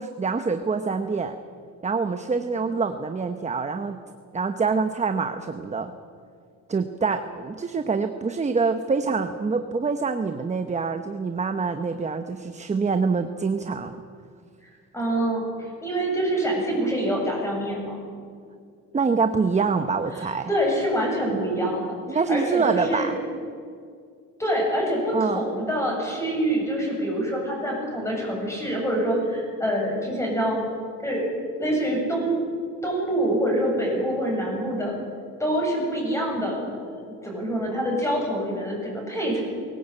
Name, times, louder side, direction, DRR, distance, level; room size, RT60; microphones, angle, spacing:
voice 1, 0.0-1.4 1.8-4.0 4.3-5.9 6.7-14.0 18.9-20.5 22.1-23.2 25.1-25.5, right 4 dB, 20° right, 8 dB, 0.9 m, -25 dB
voice 2, 14.6-18.0 20.1-23.1 24.4-30.6 31.0-31.3 31.6-32.4 32.8-34.9 35.4-39.4, right 1 dB, 10° left, -1 dB, 7.9 m, -26 dB
21.0 x 18.0 x 9.0 m, 2.2 s
cardioid pair, 135°, 33 cm